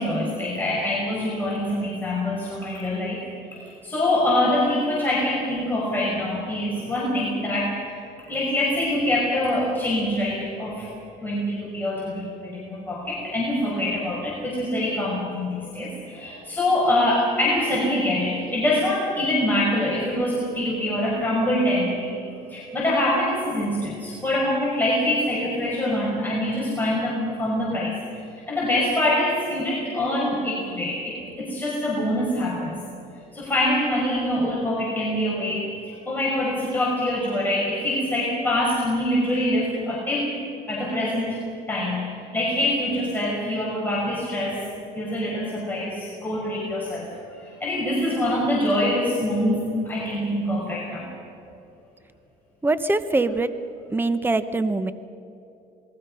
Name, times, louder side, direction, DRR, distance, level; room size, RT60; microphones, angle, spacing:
voice 1, 0.0-3.2 3.5-10.9 11.2-28.2 28.5-32.7 33.3-40.3 40.7-41.4 41.7-42.1 42.3-44.6 45.0-51.1, left 1 dB, 10° left, -5 dB, 5.8 m, -25 dB
voice 2, 52.6-53.5 53.9-54.9, right 2 dB, 10° right, 12 dB, 0.9 m, -23 dB
27.5 x 21.5 x 5.6 m, 2.9 s
cardioid pair, 110°, 17 cm